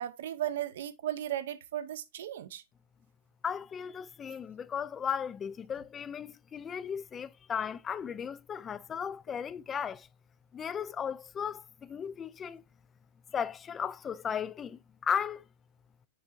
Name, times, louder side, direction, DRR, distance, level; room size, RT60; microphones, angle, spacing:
voice 1, 0.0-2.6, right 12 dB, 65° right, 0.7 m, -36 dB
voice 2, 3.4-10.1 10.5-12.6 13.3-15.4, left 7 dB, 25° left, 0.4 m, -36 dB
6.9 x 5.6 x 2.5 m
figure-of-eight pair, 100°, 0 cm